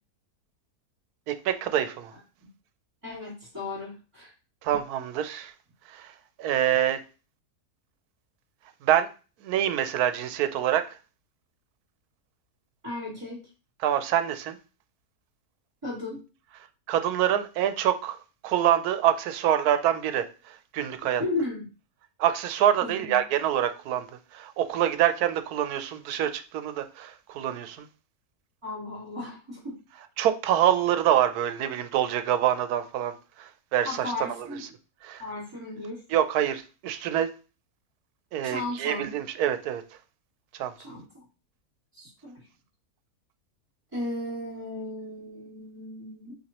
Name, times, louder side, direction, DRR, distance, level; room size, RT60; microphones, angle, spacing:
voice 1, 1.3-2.1 4.6-5.5 5.9-6.1 6.4-7.0 8.8-9.1 9.4-10.8 13.8-14.6 16.9-18.2 18.4-21.2 22.2-24.1 24.3-27.8 30.2-33.1 33.4-34.1 34.4-34.5 35.0-35.2 36.1-37.3 38.3-39.8 40.6-40.7, right 11 dB, 85° right, 1.1 m, -25 dB
voice 2, 2.1-2.5 3.0-4.3 12.8-13.4 15.8-16.2 21.2-21.6 22.8-23.1 28.6-29.7 33.8-34.6 35.2-36.0 38.4-39.0 40.8-41.2 41.9-42.4 43.9-46.3, left 2 dB, 20° right, 2.6 m, -35 dB
5.8 x 2.9 x 2.9 m
omnidirectional pair, 1.6 m